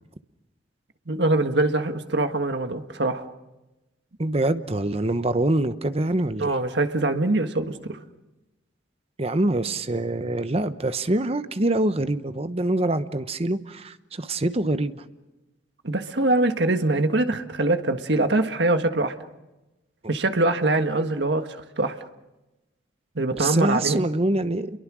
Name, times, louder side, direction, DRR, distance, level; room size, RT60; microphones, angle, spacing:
voice 1, 1.1-3.3 6.4-8.0 15.8-19.1 20.1-22.0 23.1-24.0, right 2 dB, 65° right, 7 dB, 1.6 m, -23 dB
voice 2, 4.2-6.5 9.2-15.0 20.0-20.1 23.4-24.7, right 2 dB, 35° right, 11 dB, 1.0 m, -25 dB
29.5 x 23.0 x 6.3 m, 1.0 s
head